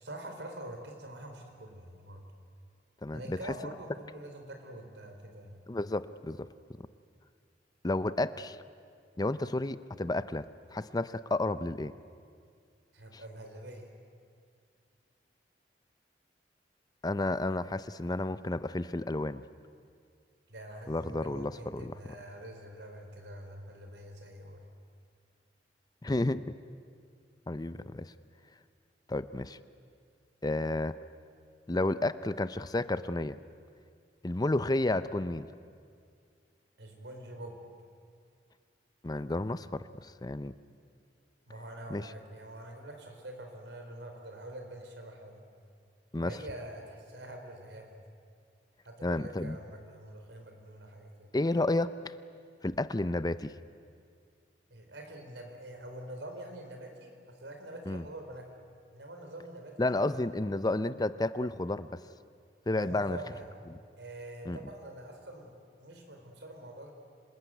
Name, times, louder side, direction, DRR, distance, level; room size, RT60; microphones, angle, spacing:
voice 1, 0.0-2.2 3.1-5.6 12.9-13.9 20.5-24.6 36.8-37.6 41.5-45.4 46.2-47.9 48.8-51.3 54.7-58.6 58.9-60.5 62.8-63.5 64.0-66.9, right 1 dB, 80° right, 4 dB, 4.5 m, -45 dB
voice 2, 3.0-3.4 5.7-6.5 7.8-8.6 9.2-10.5 10.7-11.9 17.0-19.4 20.9-21.9 26.0-26.5 27.5-28.1 29.1-29.6 30.4-31.0 31.7-33.4 34.2-35.5 39.0-40.5 41.9-42.1 46.1-46.4 49.0-49.6 51.3-52.1 52.6-53.5 57.9-58.0 59.8-62.0 62.7-63.2 64.5-64.6, left 2 dB, 20° left, 14 dB, 0.6 m, -31 dB
26.5 x 20.5 x 9.2 m, 2.2 s
head